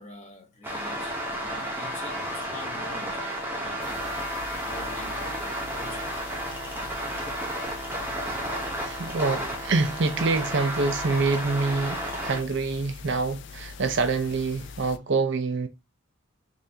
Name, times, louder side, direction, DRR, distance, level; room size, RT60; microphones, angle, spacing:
voice 1, 0.0-4.1 4.7-6.2, left 1 dB, 30° left, 1.1 m, -46 dB
sound 1, 0.6-12.4, right 1 dB, 10° right, 0.9 m, -32 dB
sound 2, 3.8-15.0, left 5 dB, 55° left, 0.3 m, -43 dB
voice 2, 8.4-15.7, right 3 dB, 55° right, 0.5 m, -26 dB
5.2 x 2.6 x 2.8 m
head